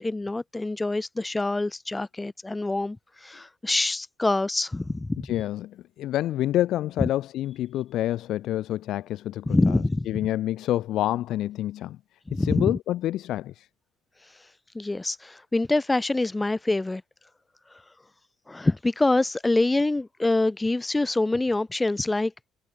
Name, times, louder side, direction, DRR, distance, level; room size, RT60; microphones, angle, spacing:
voice 1, 0.0-5.3 9.5-10.1 12.3-12.8 14.2-14.5 14.7-17.0 17.7-17.8 18.5-22.3, left 2 dB, 15° left, 0.9 m, -25 dB
voice 2, 5.2-9.8 10.1-12.0 12.3-13.7, left 13 dB, 70° left, 0.4 m, -28 dB
cardioid pair, 110°, 0 cm